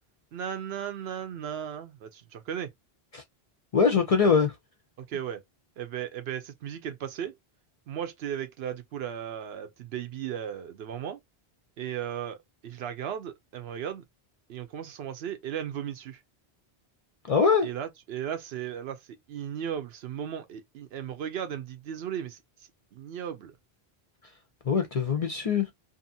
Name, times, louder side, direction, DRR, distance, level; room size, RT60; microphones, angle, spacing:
voice 1, 0.3-2.7 5.0-5.4 5.8-7.4 7.9-11.2 11.8-12.4 12.6-14.0 14.5-16.2 17.6-22.4 22.9-23.5, right 9 dB, 80° right, 0.8 m, -36 dB
voice 2, 3.7-4.5 17.2-17.7 24.7-25.7, left 5 dB, 50° left, 0.4 m, -23 dB
2.7 x 2.4 x 2.6 m
omnidirectional pair, 1.1 m